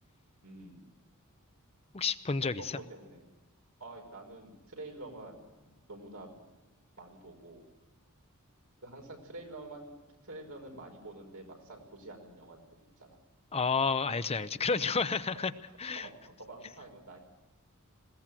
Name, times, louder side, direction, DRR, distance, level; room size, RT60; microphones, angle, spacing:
voice 1, 0.4-0.9 2.6-3.3 3.8-5.5 5.9-6.3 7.0-7.6 8.8-9.9 10.2-13.2 14.7-14.9 15.9-17.2, right 2 dB, 85° right, 2 dB, 5.4 m, -47 dB
voice 2, 1.9-2.7 13.5-15.5 15.8-16.1, left 5 dB, 30° left, 12 dB, 0.7 m, -30 dB
21.0 x 17.5 x 7.6 m, 1.1 s
head